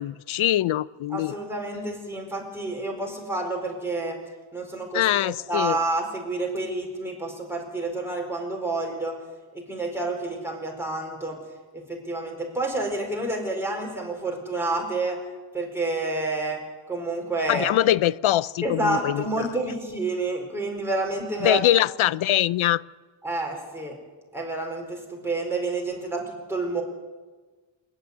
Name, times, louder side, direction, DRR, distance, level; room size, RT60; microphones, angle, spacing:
voice 1, 0.0-1.3 4.9-5.8 17.5-19.5 21.4-22.8, left 13 dB, 85° left, 20 dB, 0.6 m, -23 dB
voice 2, 1.1-4.2 4.5-9.1 9.5-11.4 11.7-15.2 15.5-16.6 16.9-17.7 18.6-21.7 23.2-24.0 24.3-26.8, right 2 dB, 5° right, -1 dB, 4.5 m, -29 dB
27.5 x 9.9 x 9.7 m, 1.3 s
wide cardioid pair, 165°, 47 cm